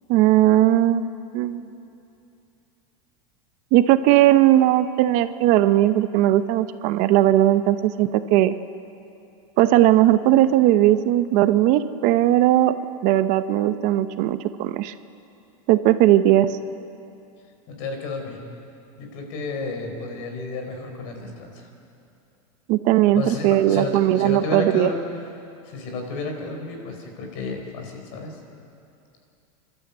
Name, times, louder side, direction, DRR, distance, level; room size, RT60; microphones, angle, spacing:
voice 1, 0.1-1.6 3.7-8.5 9.6-12.7 13.0-14.9 15.7-16.5 22.7-24.9, right 13 dB, 50° right, 11 dB, 0.8 m, -18 dB
voice 2, 17.7-18.4 19.0-21.7 23.1-25.0 25.7-28.3, left 3 dB, 55° left, 3 dB, 4.5 m, -32 dB
28.0 x 12.5 x 8.2 m, 2.7 s
supercardioid pair, 145°, 17 cm